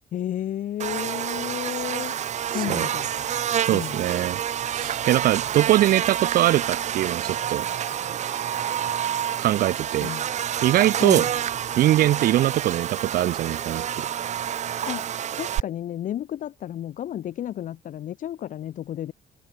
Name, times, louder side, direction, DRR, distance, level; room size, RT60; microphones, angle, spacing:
voice 1, 0.1-2.1 2.5-3.1 3.7-4.0 10.0-10.3 11.0-11.3 14.9-15.1 15.4-19.1, left 11 dB, 60° left, 1.5 m, -32 dB
Buzz, 0.8-15.6, right 10 dB, 50° right, 1.3 m, -28 dB
voice 2, 3.6-4.4 4.7-7.7 9.4-10.1 10.6-11.3 11.8-14.1, right 14 dB, 75° right, 1.6 m, -22 dB
open air
cardioid pair, 130°, 15 cm